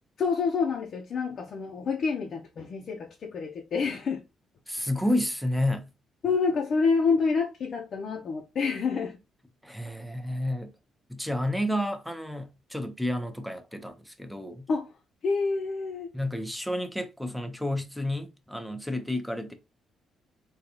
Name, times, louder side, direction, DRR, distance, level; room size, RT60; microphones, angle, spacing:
voice 1, 0.2-4.2 6.2-9.2 14.7-14.9 15.2-16.1, left 5 dB, 55° left, 0.6 m, -28 dB
voice 2, 4.7-5.9 9.6-10.7 11.1-14.7 16.1-19.5, left 1 dB, ahead, 0.7 m, -30 dB
3.8 x 2.3 x 2.9 m
cardioid pair, 90°, 0 cm